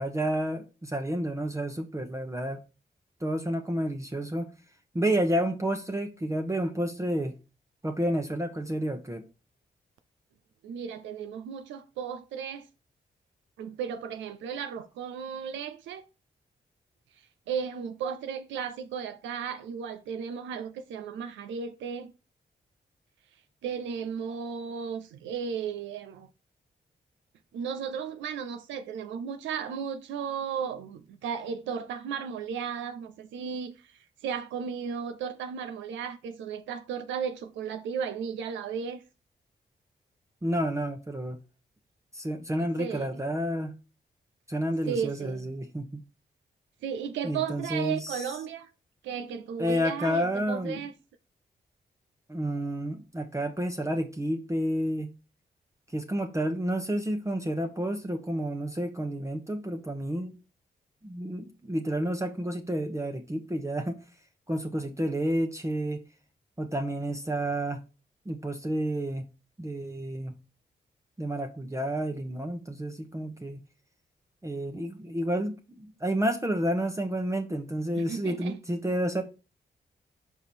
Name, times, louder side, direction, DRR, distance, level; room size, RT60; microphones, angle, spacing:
voice 1, 0.0-2.6 3.2-4.5 4.9-7.3 7.8-9.2 40.4-41.4 42.1-43.7 44.5-46.0 47.2-48.2 49.6-50.8 52.3-55.1 55.9-60.3 61.0-64.0 64.5-66.0 66.6-67.8 68.3-69.2 69.6-70.3 71.2-73.6 74.4-79.2, right 1 dB, 15° right, 1.0 m, -30 dB
voice 2, 10.6-12.7 13.6-16.1 17.5-22.1 23.6-26.3 27.5-39.0 42.8-43.2 44.9-45.5 46.8-48.7 49.0-50.9 78.0-78.6, right 7 dB, 90° right, 0.5 m, -35 dB
5.5 x 4.7 x 4.4 m
supercardioid pair, 45°, 19 cm